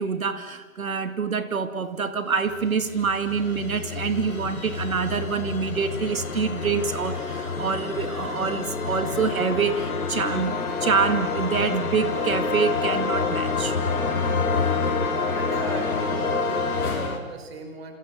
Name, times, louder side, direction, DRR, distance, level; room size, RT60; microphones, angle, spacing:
voice 1, 0.0-13.8, right 5 dB, 70° right, 10 dB, 2.4 m, -26 dB
sound 1, 2.5-17.2, left 4 dB, 80° left, 5.0 m, -28 dB
Trumpet, 9.4-16.3, left 8 dB, 30° left, 2.2 m, -39 dB
voice 2, 15.3-18.0, right 4 dB, 45° right, 5 dB, 5.7 m, -36 dB
28.5 x 28.0 x 6.6 m, 1.4 s
hypercardioid pair, 160°, 43 cm